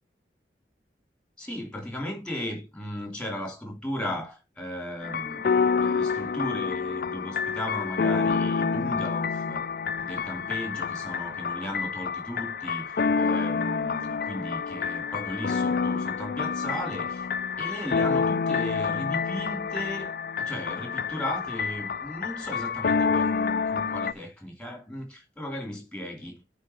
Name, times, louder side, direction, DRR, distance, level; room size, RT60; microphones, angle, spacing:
voice 1, 1.4-9.6 10.0-17.3 17.6-26.4, left 1 dB, 5° left, 2.7 m, -36 dB
sound 1, 5.0-24.1, left 5 dB, 55° left, 0.4 m, -28 dB
9.5 x 3.9 x 5.5 m
head